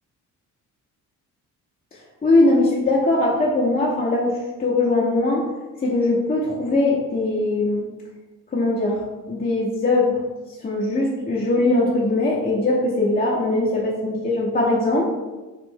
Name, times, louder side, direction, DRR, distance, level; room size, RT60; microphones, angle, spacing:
voice 1, 2.2-5.5 5.8-7.9 8.5-9.0 9.3-10.2 10.6-15.0, left 2 dB, 20° left, -5 dB, 0.6 m, -20 dB
3.1 x 2.5 x 3.5 m, 1.2 s
hypercardioid pair, 50°, 47 cm